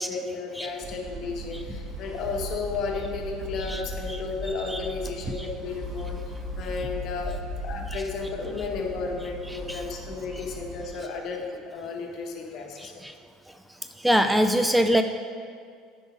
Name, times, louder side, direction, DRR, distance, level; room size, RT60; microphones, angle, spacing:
voice 1, 0.0-7.3 7.6-12.9, left 4 dB, 55° left, 1 dB, 1.3 m, -33 dB
sound 1, 0.8-10.9, equal, 30° right, 1.9 m, -37 dB
voice 2, 14.0-15.0, equal, 5° right, 8 dB, 0.4 m, -22 dB
8.6 x 5.1 x 5.0 m, 2.1 s
supercardioid pair, 90°, 0 cm